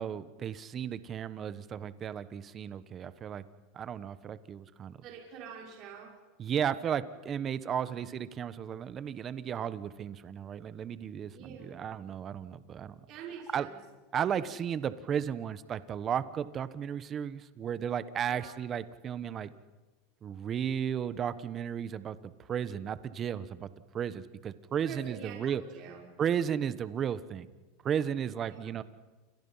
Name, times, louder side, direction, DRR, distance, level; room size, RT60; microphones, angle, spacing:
voice 1, 0.0-3.4 3.7-5.0 6.4-13.0 13.5-13.7 14.1-19.5 20.2-23.7 23.9-25.6 26.2-27.5 27.8-28.8, right 8 dB, 30° right, 14 dB, 1.2 m, -34 dB
voice 2, 5.0-6.1 7.8-8.0 11.3-11.9 13.1-13.8 14.3-14.5 18.3-18.5 24.8-26.0 28.4-28.7, right 7 dB, 45° right, -1 dB, 5.7 m, -46 dB
30.0 x 26.0 x 5.8 m, 1.3 s
supercardioid pair, 130°, 0 cm